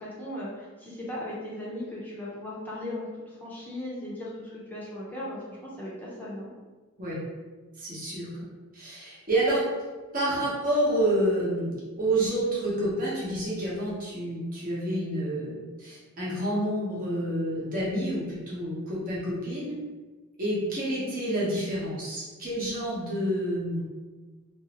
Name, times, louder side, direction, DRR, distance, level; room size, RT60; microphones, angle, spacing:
voice 1, 0.0-3.1 3.4-6.5, left 1 dB, 10° left, -7 dB, 0.6 m, -37 dB
voice 2, 7.7-8.5 8.7-9.6 10.1-19.7 20.4-23.8, right 1 dB, 40° right, -7 dB, 0.9 m, -29 dB
3.0 x 2.6 x 2.9 m, 1.3 s
head